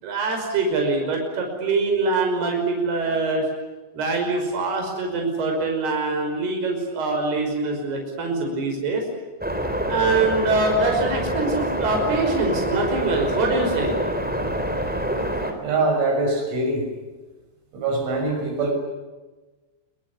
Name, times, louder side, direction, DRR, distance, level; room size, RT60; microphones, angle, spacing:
voice 1, 0.0-3.4 3.9-9.0 9.9-14.0, right 3 dB, 60° right, 2 dB, 7.5 m, -24 dB
sound 1, 9.4-15.5, equal, ahead, 3.0 m, -26 dB
voice 2, 15.6-16.9 17.7-18.7, right 2 dB, 90° right, 3 dB, 8.7 m, -23 dB
26.5 x 23.0 x 9.7 m, 1.2 s
omnidirectional pair, 5.3 m